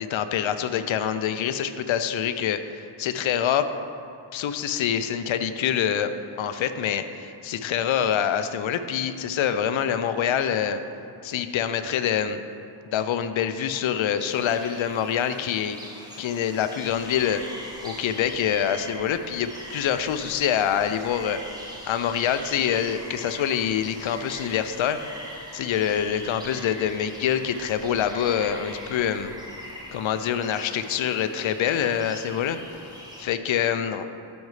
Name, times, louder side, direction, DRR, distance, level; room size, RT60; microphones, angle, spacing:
voice 1, 0.1-3.7 4.3-6.1 6.4-10.8 11.2-12.4 12.9-15.8 16.2-17.4 17.8-21.4 21.8-25.0 25.5-29.3 29.9-32.6 33.2-34.1, left 9 dB, 70° left, 10 dB, 0.5 m, -25 dB
sound 1, 14.2-33.2, equal, 10° right, 1.0 m, -42 dB
12.0 x 5.3 x 3.2 m, 2.5 s
wide cardioid pair, 150°, 49 cm